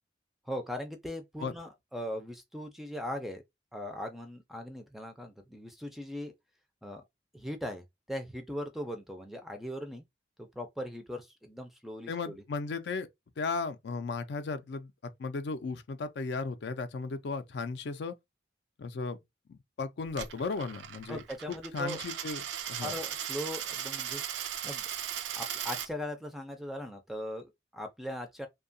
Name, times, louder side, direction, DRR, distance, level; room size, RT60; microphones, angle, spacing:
voice 1, 0.5-3.4 3.7-6.3 6.8-7.0 7.3-10.0 10.4-12.4 21.1-22.0 22.8-24.8 25.3-28.5, left 1 dB, ahead, 0.3 m, -39 dB
voice 2, 12.1-13.1 13.4-18.1 18.8-19.2 19.5-21.2 21.5-22.9, left 4 dB, 70° left, 0.4 m, -35 dB
Coin (dropping), 20.1-25.9, right 10 dB, 85° right, 0.4 m, -37 dB
2.7 x 2.2 x 2.5 m
head